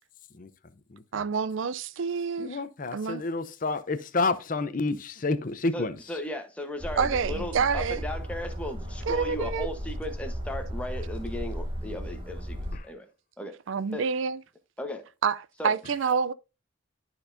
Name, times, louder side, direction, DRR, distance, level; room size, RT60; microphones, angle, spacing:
voice 1, 1.1-2.6 2.9-3.2 7.0-8.0 9.1-9.7 13.7-14.4 15.2-16.3, right 6 dB, 65° right, 0.4 m, -28 dB
voice 2, 2.4-6.0 12.7-12.9, left 3 dB, 40° left, 0.6 m, -29 dB
voice 3, 5.7-13.1 13.4-13.5 13.9-14.0 14.8-15.0 15.6-15.7, left 1 dB, 5° left, 1.0 m, -36 dB
sound 1, 6.8-12.8, equal, 25° right, 1.0 m, -35 dB
12.5 x 4.4 x 2.6 m
head